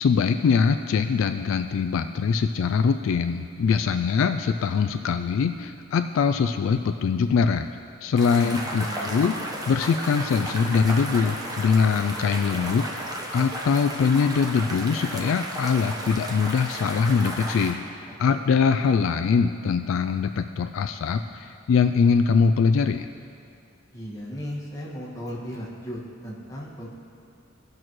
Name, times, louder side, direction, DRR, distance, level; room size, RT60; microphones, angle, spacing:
voice 1, 0.0-7.7 8.0-9.4 9.7-12.9 13.3-17.8 18.2-23.1, left 5 dB, 70° left, 7 dB, 0.3 m, -22 dB
sound 1, 8.2-17.7, right 1 dB, 20° right, 0.9 m, -33 dB
voice 2, 8.4-9.1 18.1-18.4 18.7-18.9 23.9-26.9, equal, 15° left, -6 dB, 1.7 m, -36 dB
17.5 x 6.2 x 3.1 m, 2.5 s
head